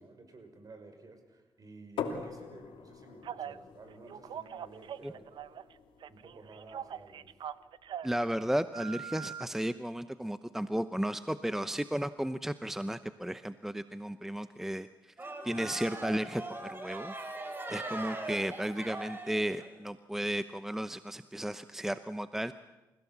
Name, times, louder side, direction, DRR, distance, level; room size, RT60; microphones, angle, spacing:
voice 1, 0.0-5.6 6.1-7.3, right 3 dB, 45° right, 6 dB, 5.9 m, -53 dB
sound 1, 2.0-7.6, left 6 dB, 85° left, 2.8 m, -44 dB
Telephone, 3.2-3.6 4.1-5.7 6.0-8.2 8.7-9.4, right 9 dB, 70° right, 0.8 m, -42 dB
voice 2, 8.0-14.9 15.4-17.1 17.7-22.5, right 1 dB, 5° right, 12 dB, 0.8 m, -34 dB
sound 2, 15.2-19.7, right 2 dB, 25° right, 4.5 m, -40 dB
30.0 x 16.5 x 7.3 m, 1.1 s
cardioid pair, 75°, 8 cm